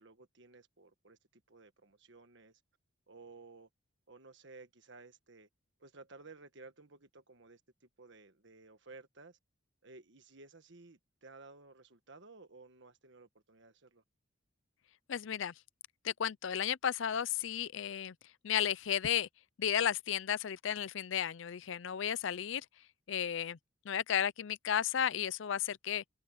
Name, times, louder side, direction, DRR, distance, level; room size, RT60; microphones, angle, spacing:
voice 1, 0.0-2.6 3.1-3.7 4.1-5.5 5.8-9.4 9.8-14.0, right 3 dB, 60° right, 1.5 m, -56 dB
voice 2, 15.1-15.5 16.0-18.1 18.4-19.3 19.6-22.7 23.1-23.6 23.8-26.1, left 9 dB, 65° left, 0.5 m, -33 dB
open air
head